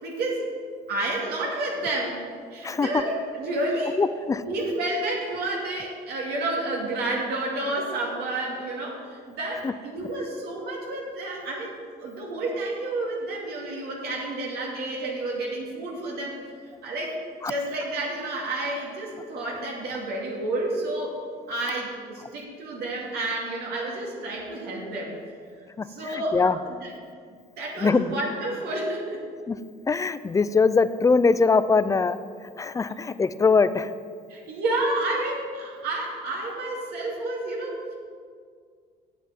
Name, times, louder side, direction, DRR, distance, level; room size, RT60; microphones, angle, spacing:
voice 1, 0.0-0.4 0.9-2.2 2.5-4.0 4.4-11.7 12.0-16.4 16.8-17.2 17.5-21.2 21.5-25.1 25.9-26.9 27.6-29.2 34.3-37.8, right 2 dB, 70° right, -2 dB, 2.4 m, -30 dB
voice 2, 4.0-4.4 9.6-9.7 17.4-17.5 25.8-26.6 27.8-28.2 29.5-29.6 29.9-32.2 32.6-33.9, left 4 dB, 20° left, 14 dB, 0.4 m, -22 dB
8.3 x 8.1 x 7.5 m, 2.1 s
cardioid pair, 110°, 17 cm